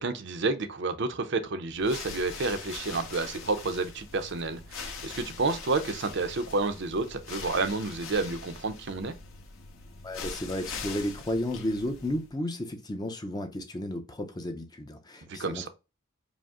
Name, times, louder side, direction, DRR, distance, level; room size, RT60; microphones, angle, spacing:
voice 1, 0.0-9.1 15.3-15.7, right 3 dB, 50° right, 0.6 m, -30 dB
sound 1, 1.7-12.4, left 5 dB, 65° left, 1.0 m, -42 dB
voice 2, 10.0-15.7, left 1 dB, 20° left, 0.5 m, -33 dB
5.1 x 2.0 x 3.5 m
head